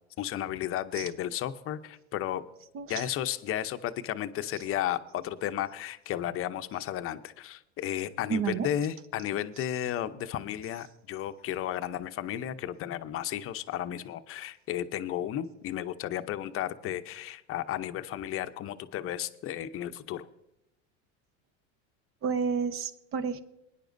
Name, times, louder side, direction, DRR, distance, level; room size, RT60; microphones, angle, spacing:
voice 1, 0.2-2.4 2.9-20.3, left 11 dB, 40° left, 11 dB, 0.7 m, -33 dB
voice 2, 8.3-8.7 22.2-23.4, right 6 dB, 40° right, 12 dB, 1.0 m, -30 dB
22.0 x 10.0 x 2.6 m, 0.86 s
supercardioid pair, 115°, 34 cm